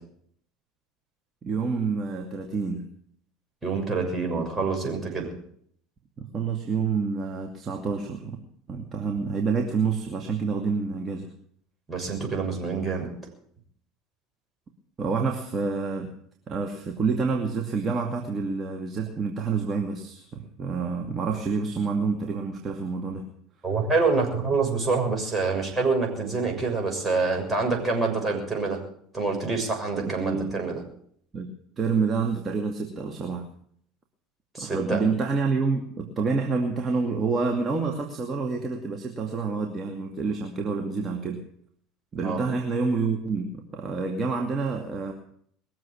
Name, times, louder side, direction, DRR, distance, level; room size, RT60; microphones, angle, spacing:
voice 1, 1.4-2.8 6.2-8.4 8.7-11.3 15.0-16.1 16.5-23.2 30.0-30.6 31.3-31.5 31.8-33.5 34.6-41.4 42.1-45.1, right 4 dB, 35° right, 2 dB, 2.3 m, -28 dB
voice 2, 3.6-5.3 11.9-13.1 23.6-28.8 29.1-30.8 34.5-35.0 42.2-42.4, right 4 dB, 15° right, 1 dB, 6.7 m, -26 dB
21.5 x 7.6 x 8.7 m, 0.66 s
hypercardioid pair, 70°, 0 cm